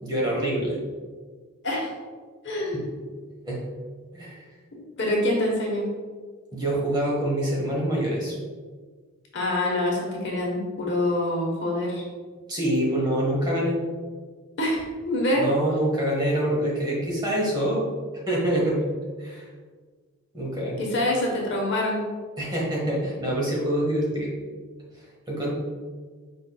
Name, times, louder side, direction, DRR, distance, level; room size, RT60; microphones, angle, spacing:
voice 1, 0.0-0.8 2.7-2.9 3.4-3.6 4.1-4.4 6.5-8.4 12.5-13.8 15.3-17.8 18.3-18.9 19.2-19.5 20.3-20.8 22.4-24.3 24.9-25.5, right 1 dB, 20° right, -4 dB, 1.0 m, -25 dB
voice 2, 2.4-2.9 4.7-5.9 9.3-12.0 14.6-15.4 15.7-15.9 20.8-22.0, left 1 dB, 55° left, -2 dB, 1.1 m, -26 dB
4.9 x 4.4 x 2.3 m, 1.5 s
head